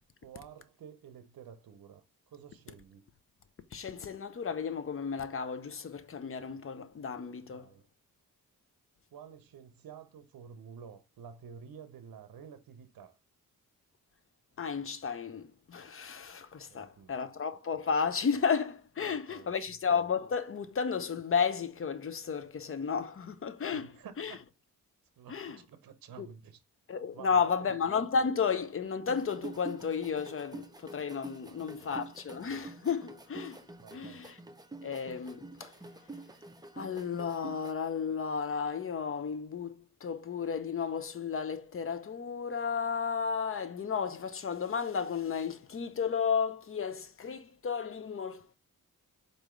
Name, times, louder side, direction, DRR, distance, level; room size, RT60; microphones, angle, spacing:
voice 1, 0.2-3.0 7.5-7.8 9.1-13.2 16.7-17.1 19.0-19.5 23.7-24.4 25.2-26.6 27.1-27.7 31.4-32.0 33.8-34.3, right 7 dB, 70° right, 0.7 m, -51 dB
voice 2, 3.7-7.7 14.6-24.3 25.3-25.6 26.2-26.3 26.9-33.7 33.9-34.4 34.8-35.8 36.8-48.5, left 6 dB, 35° left, 0.6 m, -33 dB
sound 1, 29.1-37.7, right 3 dB, 10° right, 0.6 m, -47 dB
4.7 x 2.7 x 3.1 m
cardioid pair, 70°, 36 cm